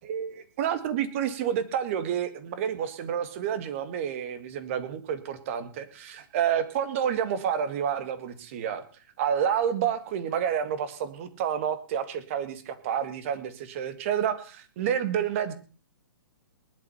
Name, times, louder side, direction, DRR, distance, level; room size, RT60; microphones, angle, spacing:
voice 1, 0.1-8.8 9.2-15.5, right 8 dB, 35° right, 11 dB, 2.1 m, -29 dB
19.5 x 11.5 x 5.8 m, 0.38 s
hypercardioid pair, 165°, 12 cm